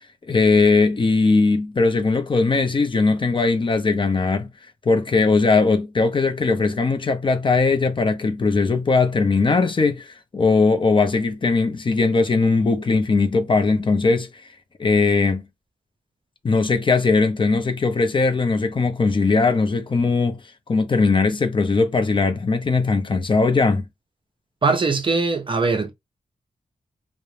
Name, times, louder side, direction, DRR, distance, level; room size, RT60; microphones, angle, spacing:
voice 1, 0.3-4.5 4.9-14.3 14.8-15.4 16.4-20.4 20.7-23.8, left 4 dB, 35° left, 0.4 m, -19 dB
voice 2, 24.6-25.9, right 4 dB, 35° right, 0.5 m, -21 dB
2.5 x 2.0 x 3.1 m
wide cardioid pair, 115°, 15 cm